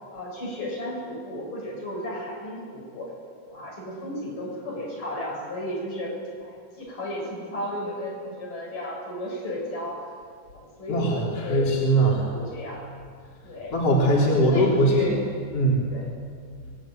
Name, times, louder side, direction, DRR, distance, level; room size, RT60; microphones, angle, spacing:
voice 1, 0.1-3.1 3.4-6.1 6.4-10.1 10.5-11.7 12.1-12.8 13.4-13.8 14.1-15.2 15.9-16.1, left 1 dB, 75° left, -2 dB, 8.8 m, -34 dB
voice 2, 10.9-12.3 13.7-15.1 15.5-15.8, right 1 dB, 45° left, -3 dB, 4.7 m, -21 dB
25.0 x 21.0 x 9.2 m, 2.1 s
omnidirectional pair, 3.8 m